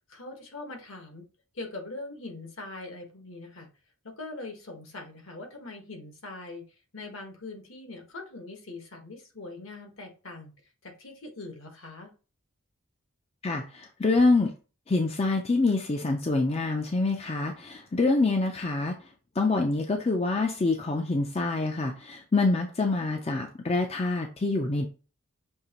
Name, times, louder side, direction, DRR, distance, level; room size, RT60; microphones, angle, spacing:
voice 1, 0.1-1.2 1.5-3.7 4.0-6.6 6.9-10.5 10.8-12.1, left 2 dB, 70° left, 2 dB, 1.3 m, -42 dB
voice 2, 13.4-14.5 14.9-19.0 19.4-24.9, left 3 dB, 30° left, 4 dB, 0.4 m, -26 dB
6.4 x 2.9 x 2.9 m, 0.34 s
head